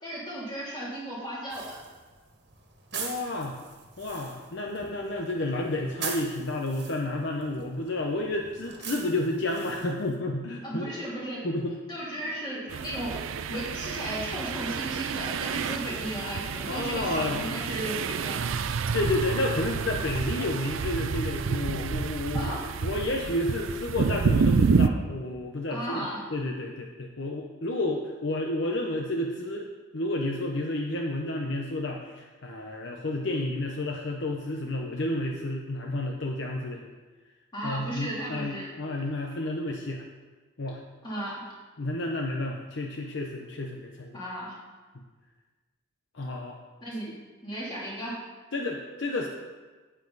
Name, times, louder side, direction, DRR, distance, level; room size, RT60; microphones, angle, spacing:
voice 1, 0.0-1.8 10.6-11.4 11.9-13.1 13.5-18.4 22.3-22.6 25.7-26.2 37.5-38.7 41.0-41.4 44.1-44.6 46.8-47.2 47.4-48.1, right 1 dB, 20° left, -6 dB, 3.0 m, -35 dB
sound 1, 1.5-10.2, right 6 dB, 55° right, 1.6 m, -42 dB
voice 2, 2.9-3.6 4.0-10.9 11.4-11.7 16.7-17.5 18.9-22.5 22.8-29.7 29.9-36.9 37.6-40.0 40.6-40.8 41.8-44.2 44.9-45.0 46.1-46.6 48.5-49.3, left 2 dB, 60° left, 1 dB, 0.8 m, -31 dB
sound 2, 12.7-24.9, right 5 dB, 70° right, 0.4 m, -29 dB
9.7 x 9.0 x 4.1 m, 1.3 s
head